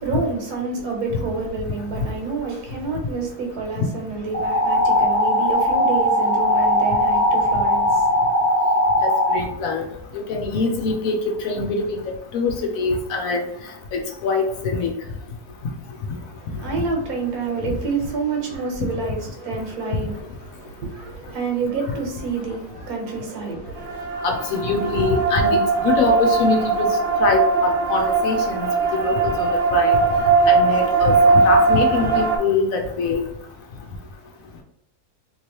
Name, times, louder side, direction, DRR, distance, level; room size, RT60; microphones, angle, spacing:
voice 1, 0.0-8.3 16.4-24.0, right 4 dB, 70° right, 1.4 m, -28 dB
sound 1, 4.3-9.4, left 1 dB, 30° left, 0.8 m, -19 dB
voice 2, 9.0-9.9 10.1-12.0 12.3-13.4 13.9-14.9 24.2-26.9 27.2-28.7 29.0-30.0 30.5-33.2, left 4 dB, 65° left, 1.0 m, -23 dB
sound 2, 23.8-32.4, right 4 dB, 50° right, 0.8 m, -19 dB
3.1 x 2.9 x 2.9 m
omnidirectional pair, 1.7 m